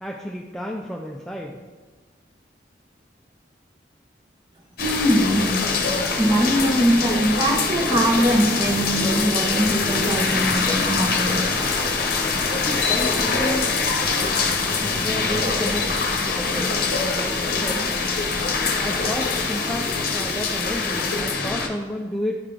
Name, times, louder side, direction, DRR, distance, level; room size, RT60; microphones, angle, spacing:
voice 1, 0.0-1.6 12.6-13.7 14.8-16.8 17.1-17.8 18.8-22.4, equal, ahead, -1 dB, 0.4 m, -31 dB
sound 1, 4.8-21.7, left 4 dB, 55° left, 0.9 m, -24 dB
voice 2, 4.8-5.5 6.2-11.6, equal, 20° right, 0 dB, 0.9 m, -21 dB
10.5 x 3.7 x 3.3 m, 1.4 s
head